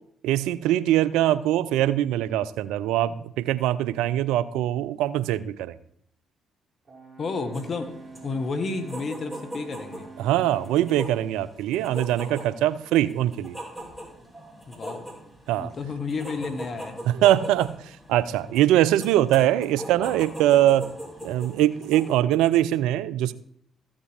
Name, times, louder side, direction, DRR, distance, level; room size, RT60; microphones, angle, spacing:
voice 1, 0.2-5.8 10.2-13.6 15.5-15.7 17.1-20.9 21.2-23.3, right 13 dB, 80° right, 17 dB, 0.4 m, -22 dB
Brass instrument, 6.9-11.1, right 3 dB, 35° right, 2.6 m, -46 dB
voice 2, 7.2-10.1 14.7-15.1 15.6-17.0, left 4 dB, 50° left, 8 dB, 1.3 m, -31 dB
sound 1, 7.5-22.2, equal, ahead, 3.8 m, -41 dB
14.0 x 7.3 x 3.4 m, 0.69 s
hypercardioid pair, 50°, 0 cm